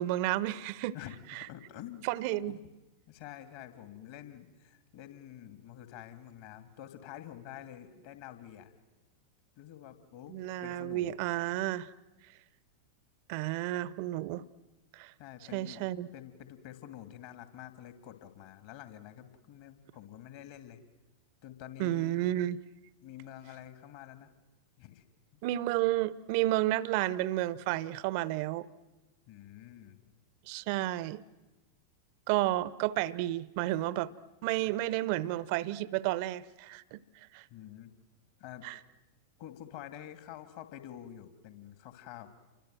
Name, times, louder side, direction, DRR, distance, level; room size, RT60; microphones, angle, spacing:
voice 1, 0.0-0.9 1.3-1.5 2.0-2.6 10.3-11.9 13.3-14.4 15.0-15.1 15.5-16.1 21.8-22.6 25.4-28.7 30.5-31.2 32.3-34.1 34.4-37.0 37.3-37.4 38.6-38.8, right 15 dB, 45° right, 0.8 m, -31 dB
voice 2, 0.9-2.0 2.5-2.6 3.1-8.7 9.6-11.2 15.2-15.8 16.1-20.8 21.4-22.3 23.0-24.3 24.8-25.0 25.3-25.4 29.3-30.0 37.5-37.9 38.4-38.7 39.4-42.3, left 11 dB, 50° left, 2.6 m, -48 dB
29.0 x 24.0 x 7.9 m
figure-of-eight pair, 90°, 0 cm